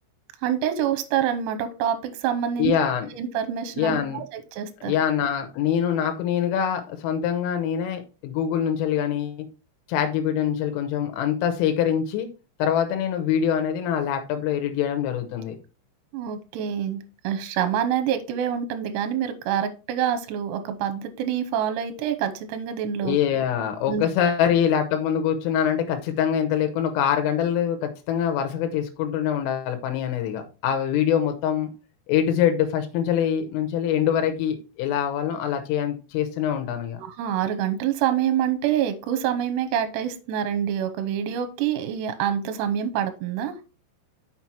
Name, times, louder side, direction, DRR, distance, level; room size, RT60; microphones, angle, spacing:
voice 1, 0.4-2.7 3.1-5.0 16.1-23.2 23.9-24.0 37.0-43.5, right 9 dB, 80° right, 9 dB, 2.7 m, -26 dB
voice 2, 2.6-3.1 3.8-4.2 4.8-9.5 9.9-12.3 12.6-15.6 23.0-31.7 32.1-37.0, left 9 dB, 90° left, 6 dB, 3.6 m, -24 dB
6.4 x 6.1 x 4.2 m, 0.32 s
omnidirectional pair, 5.6 m